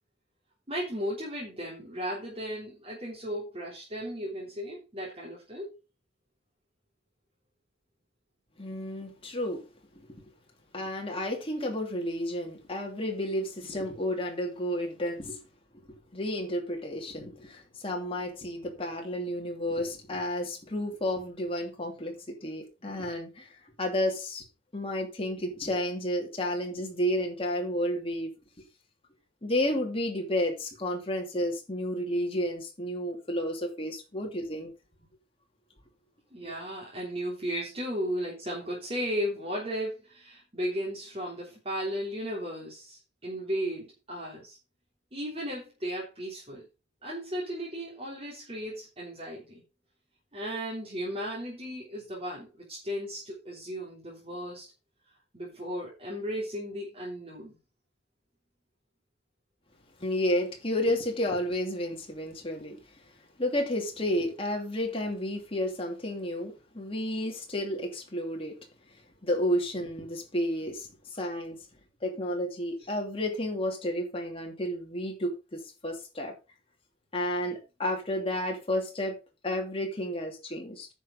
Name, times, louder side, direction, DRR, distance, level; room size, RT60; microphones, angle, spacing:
voice 1, 0.7-5.7 36.3-44.6 45.1-46.7 47.0-49.6 50.3-54.7 55.3-57.6, equal, 30° right, 3.5 m, -35 dB
voice 2, 8.6-9.7 10.1-10.2 10.7-15.4 16.1-22.2 22.4-24.5 24.7-28.3 29.4-34.7 36.4-36.6 37.5-37.6 60.0-62.8 63.4-68.5 69.2-71.6 72.0-76.3 77.1-79.2 79.4-80.9, left 1 dB, 30° left, 2.7 m, -31 dB
10.0 x 6.3 x 5.0 m
head